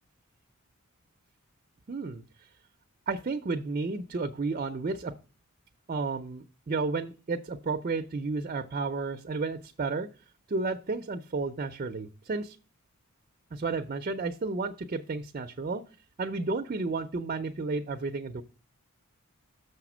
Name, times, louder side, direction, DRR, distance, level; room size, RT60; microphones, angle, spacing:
voice 1, 1.9-2.2 3.1-5.1 5.9-10.1 10.5-12.6 13.5-15.8 16.2-18.4, right 3 dB, 40° right, 6 dB, 0.4 m, -32 dB
6.6 x 4.9 x 6.0 m, 0.36 s
head